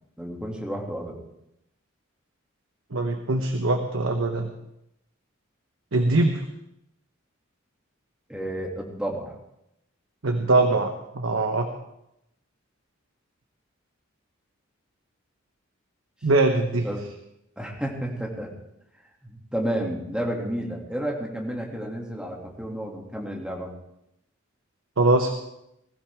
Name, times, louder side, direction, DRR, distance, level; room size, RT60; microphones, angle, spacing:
voice 1, 0.2-1.2 8.3-9.3 16.8-17.0 17.6-18.5 19.2-23.7, right 1 dB, 5° right, -1 dB, 2.4 m, -31 dB
voice 2, 2.9-4.5 5.9-6.4 10.2-11.7 16.2-16.9 25.0-25.3, right 2 dB, 80° right, 5 dB, 1.2 m, -22 dB
21.0 x 15.0 x 3.6 m, 0.83 s
head